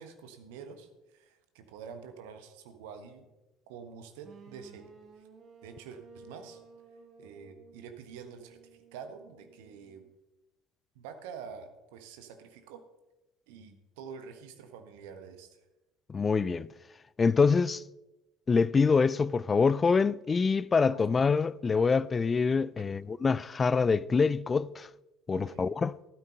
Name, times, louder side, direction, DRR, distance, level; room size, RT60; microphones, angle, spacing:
voice 1, 0.0-3.3 3.7-4.9 5.2-5.3 5.6-6.6 7.2-8.6 8.9-10.0 10.9-12.8 13.5-15.6 20.9-21.0 25.3-25.7, right 6 dB, 65° right, 1.4 m, -47 dB
sound 1, 4.2-10.1, right 4 dB, 40° right, 1.8 m, -55 dB
voice 2, 16.1-16.7 17.2-17.8 18.5-24.9 25.3-25.9, left 5 dB, 25° left, 0.4 m, -25 dB
14.5 x 12.5 x 4.1 m
figure-of-eight pair, 60°, 0 cm